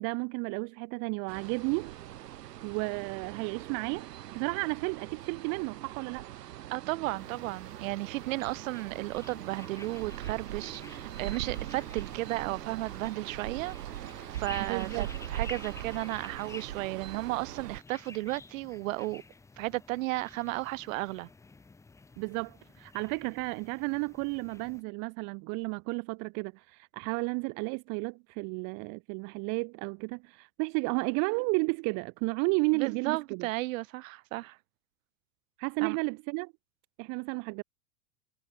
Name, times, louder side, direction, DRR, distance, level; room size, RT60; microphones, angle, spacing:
voice 1, 0.0-1.9 2.6-6.3 14.6-15.1 22.2-33.5 35.6-36.5 37.0-37.6, right 34 dB, 35° right, 1.2 m, -33 dB
sound 1, 1.3-17.8, right 13 dB, 80° right, 1.9 m, -41 dB
voice 2, 6.7-13.8 14.4-19.2 19.6-21.3 32.7-34.6 35.8-36.0, right 20 dB, 55° right, 2.0 m, -34 dB
sound 2, 7.1-24.8, left 4 dB, 5° left, 1.1 m, -51 dB
supercardioid pair, 145°, 47 cm